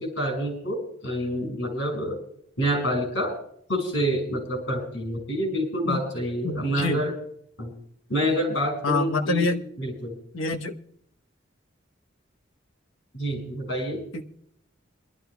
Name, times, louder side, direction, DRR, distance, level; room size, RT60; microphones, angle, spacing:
voice 1, 0.0-2.2 2.6-3.3 3.7-7.1 7.6-7.7 8.1-9.5 9.8-10.1 13.1-14.0, equal, 65° left, 4 dB, 5.5 m, -27 dB
voice 2, 6.4-7.0 8.8-9.6 10.3-10.8 14.1-14.2, left 3 dB, 85° left, 3 dB, 1.0 m, -26 dB
27.0 x 12.5 x 2.3 m, 0.67 s
head